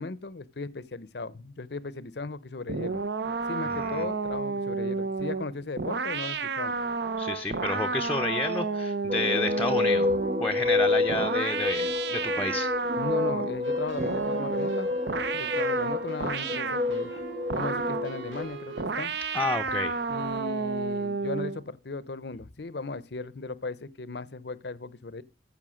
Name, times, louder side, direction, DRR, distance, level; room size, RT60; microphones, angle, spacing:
voice 1, 0.0-3.0 3.5-6.7 13.0-15.0 15.3-17.1 17.5-19.1 20.1-25.2, left 3 dB, 60° left, 0.7 m, -37 dB
sound 1, 2.7-10.5 11.1-13.6 14.0-16.9 17.5-18.1 18.8-21.6, right 4 dB, 60° right, 0.8 m, -31 dB
voice 2, 3.7-4.1 7.2-10.1 10.4-12.7 19.3-20.0, left 3 dB, 10° left, 0.6 m, -30 dB
sound 2, 9.1-18.4, left 3 dB, 30° right, 1.0 m, -29 dB
sound 3, 13.6-18.8, right 2 dB, 85° right, 3.3 m, -40 dB
14.5 x 5.7 x 6.3 m
head